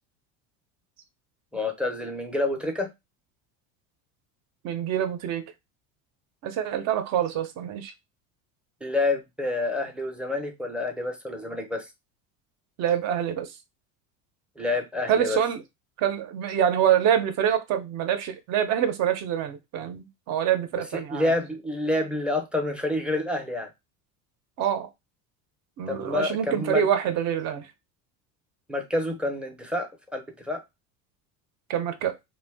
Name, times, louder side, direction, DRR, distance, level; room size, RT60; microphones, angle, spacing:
voice 1, 1.5-2.9 8.8-11.8 14.6-15.4 20.9-23.7 25.9-26.9 28.7-30.6, left 2 dB, 5° right, 0.5 m, -28 dB
voice 2, 4.6-5.4 6.4-7.9 12.8-13.5 15.1-15.6 16.0-21.3 24.6-24.9 25.8-27.7 31.7-32.1, right 9 dB, 50° right, 0.6 m, -26 dB
2.6 x 2.3 x 3.4 m
cardioid pair, 130°, 36 cm